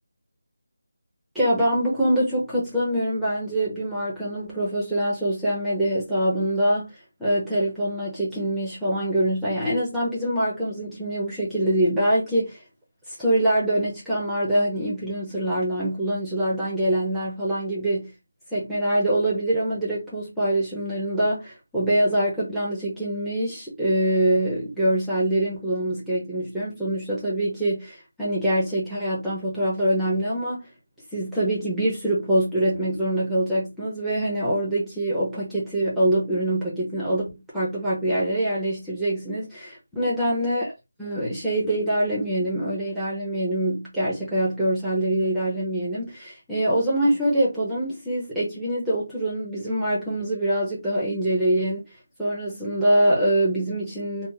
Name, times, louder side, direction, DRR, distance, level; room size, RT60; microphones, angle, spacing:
voice 1, 1.3-12.6 13.1-18.1 18.5-30.7 31.1-40.7 41.0-51.9 52.2-54.3, right 1 dB, ahead, 0.7 m, -24 dB
2.5 x 2.0 x 3.9 m
figure-of-eight pair, 170°, 0 cm